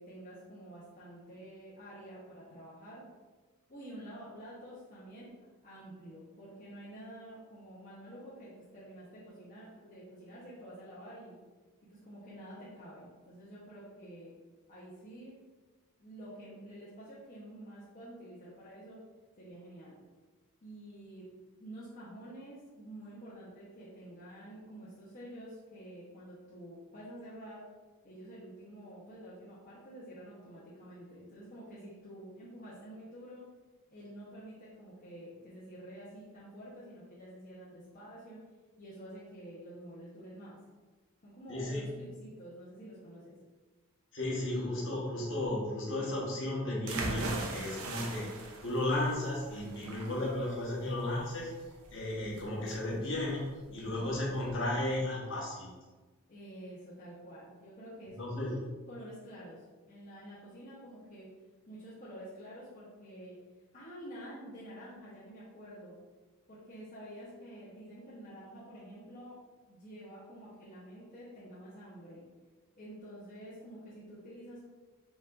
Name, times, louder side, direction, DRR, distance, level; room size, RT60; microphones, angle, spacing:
voice 1, 0.0-3.0 3.7-5.3 5.6-11.4 11.9-14.3 14.7-15.3 16.0-19.0 19.4-20.0 20.6-21.3 21.6-27.6 28.0-33.4 33.9-38.4 38.8-40.6 41.2-43.4 53.7-54.2 56.3-58.6 58.9-61.3 61.7-63.3 63.7-65.9 66.5-69.4 69.7-72.2 72.8-74.7, right 1 dB, 35° left, -8 dB, 0.9 m, -49 dB
voice 2, 41.5-41.8 44.1-51.5 51.9-55.7 58.2-58.6, left 1 dB, 55° left, -4 dB, 1.2 m, -34 dB
sound 1, 46.9-54.5, right 3 dB, 75° right, 0.6 m, -41 dB
5.0 x 3.8 x 2.5 m, 1.3 s
head